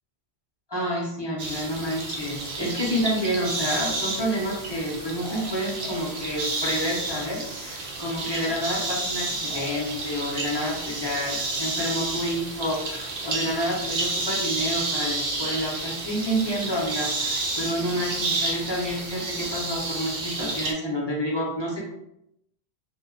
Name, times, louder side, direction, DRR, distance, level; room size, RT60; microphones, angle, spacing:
voice 1, 0.7-21.9, equal, 30° left, -4 dB, 0.6 m, -29 dB
sound 1, 1.4-20.7, right 2 dB, 65° right, 0.8 m, -30 dB
2.6 x 2.2 x 3.6 m, 0.80 s
omnidirectional pair, 1.1 m